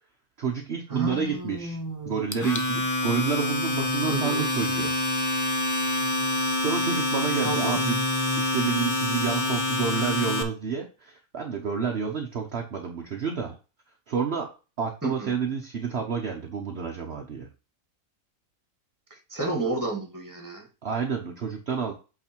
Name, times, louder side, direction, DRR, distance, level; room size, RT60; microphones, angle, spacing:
voice 1, 0.4-1.8 2.0-4.9 6.2-8.1 8.4-13.6 14.1-14.5 14.8-17.5 20.8-21.9, right 6 dB, 50° right, 2 dB, 1.1 m, -29 dB
voice 2, 0.9-2.3 4.1-4.5 7.4-7.8 15.0-15.3 19.1-20.7, right 2 dB, 15° right, 3 dB, 1.7 m, -31 dB
Domestic sounds home sounds, 2.3-10.4, left 1 dB, 20° left, 0.5 m, -26 dB
8.4 x 3.3 x 4.5 m, 0.32 s
omnidirectional pair, 1.6 m